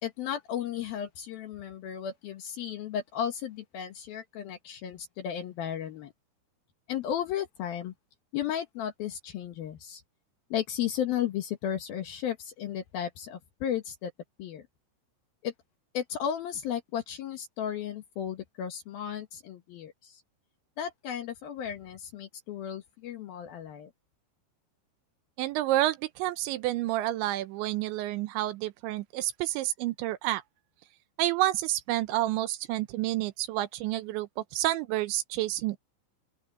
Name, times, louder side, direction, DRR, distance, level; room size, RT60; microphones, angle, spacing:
voice 1, 0.0-6.1 6.9-7.9 8.3-10.0 10.5-14.1 14.4-14.6 15.4-15.5 15.9-20.2 20.8-23.9, left 9 dB, 65° left, 2.6 m, -34 dB
voice 2, 25.4-30.4 31.2-35.8, right 15 dB, 80° right, 3.0 m, -29 dB
open air
omnidirectional pair, 5.5 m